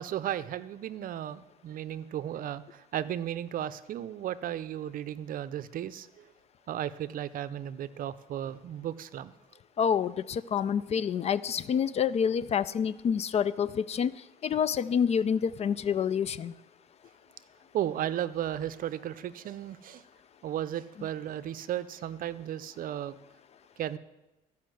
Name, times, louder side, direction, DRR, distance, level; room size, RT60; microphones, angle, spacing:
voice 1, 0.0-6.1 6.7-9.3 17.7-20.0 20.4-23.2 23.8-24.0, right 11 dB, 55° right, 14 dB, 0.6 m, -35 dB
voice 2, 9.8-14.1 14.4-16.5, left 7 dB, 40° left, 18 dB, 0.4 m, -27 dB
14.0 x 5.6 x 7.7 m, 1.0 s
cardioid pair, 110°, 17 cm